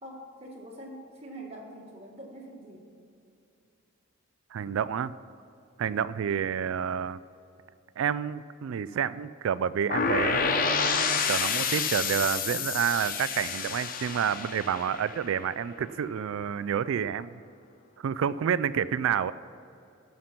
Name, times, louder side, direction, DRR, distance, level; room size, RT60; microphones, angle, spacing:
voice 1, 0.0-2.9, right 1 dB, 30° right, -2 dB, 1.6 m, -44 dB
voice 2, 4.5-5.1 5.8-7.2 8.0-17.4 18.0-19.3, right 8 dB, 80° right, 16 dB, 0.3 m, -29 dB
sound 1, 9.9-15.8, left 5 dB, 45° left, 0.6 m, -29 dB
12.5 x 5.9 x 5.8 m, 2.6 s
head